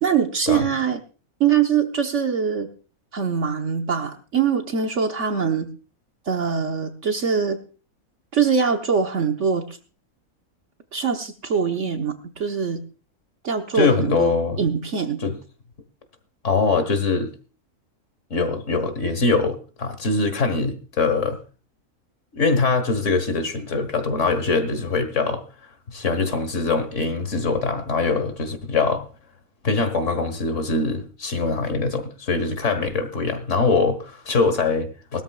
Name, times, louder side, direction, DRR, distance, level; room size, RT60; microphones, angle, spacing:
voice 1, 0.0-1.0 1.4-2.7 3.1-5.7 6.3-7.6 8.3-9.8 10.9-12.8 13.4-14.3 14.6-15.2, right 6 dB, 55° right, 5 dB, 1.4 m, -23 dB
voice 2, 13.7-14.7 15.2-15.4 16.4-17.3 18.3-21.4 22.3-25.4 25.9-29.1 29.6-35.2, left 4 dB, 55° left, 9 dB, 1.8 m, -23 dB
20.0 x 13.0 x 2.4 m, 0.36 s
omnidirectional pair, 1.5 m